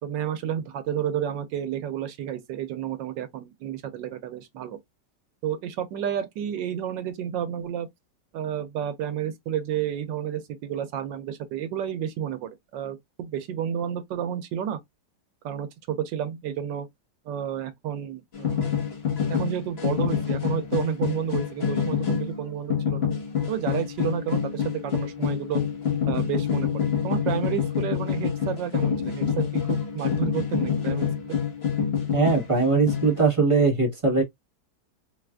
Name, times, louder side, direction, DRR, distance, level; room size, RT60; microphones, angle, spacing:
voice 1, 0.0-4.8 5.4-7.9 8.3-14.8 15.4-16.9 17.3-18.7 19.3-23.1 23.5-25.6 26.1-31.4, right 9 dB, 85° right, 1.4 m, -31 dB
sound 1, 18.3-32.6 32.9-33.2, left 7 dB, 40° left, 1.2 m, -27 dB
voice 2, 32.1-34.2, right 4 dB, 20° right, 1.0 m, -21 dB
4.6 x 2.4 x 2.2 m
omnidirectional pair, 1.9 m